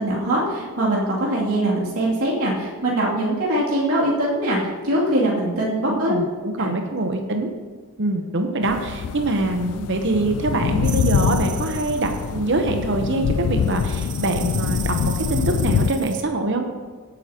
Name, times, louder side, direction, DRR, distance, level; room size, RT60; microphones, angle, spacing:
voice 1, 0.0-6.1 6.6-6.7, right 1 dB, 80° right, -6 dB, 2.7 m, -22 dB
voice 2, 5.9-7.5 8.0-16.7, right 2 dB, 55° right, 4 dB, 0.9 m, -24 dB
sound 1, 8.6-15.9, left 7 dB, 90° left, 0.3 m, -25 dB
sound 2, 10.8-12.3 13.6-16.2, right 10 dB, 35° right, 0.6 m, -36 dB
17.0 x 9.3 x 3.0 m, 1.4 s
head